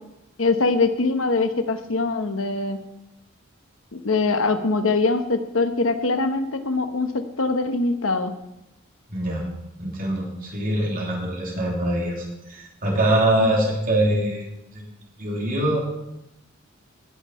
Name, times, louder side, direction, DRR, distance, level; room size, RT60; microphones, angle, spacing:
voice 1, 0.4-2.8 3.9-8.3 13.4-13.5, left 3 dB, 85° left, 8 dB, 1.1 m, -23 dB
voice 2, 9.1-9.4 9.8-14.8 15.2-15.8, right 1 dB, 45° right, -2 dB, 3.3 m, -23 dB
18.5 x 6.3 x 5.6 m, 0.90 s
head